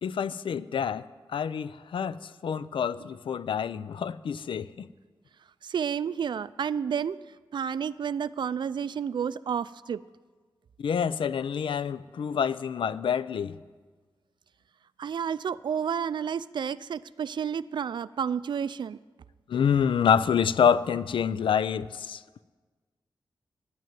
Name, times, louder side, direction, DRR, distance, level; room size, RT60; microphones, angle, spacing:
voice 1, 0.0-1.0 1.3-4.9 10.8-13.6 19.5-22.2, left 7 dB, 85° left, 0.4 m, -27 dB
voice 2, 5.6-7.2 7.5-10.0 15.0-19.0, right 7 dB, 65° right, 0.3 m, -30 dB
10.5 x 9.3 x 9.1 m
wide cardioid pair, 125°, 9 cm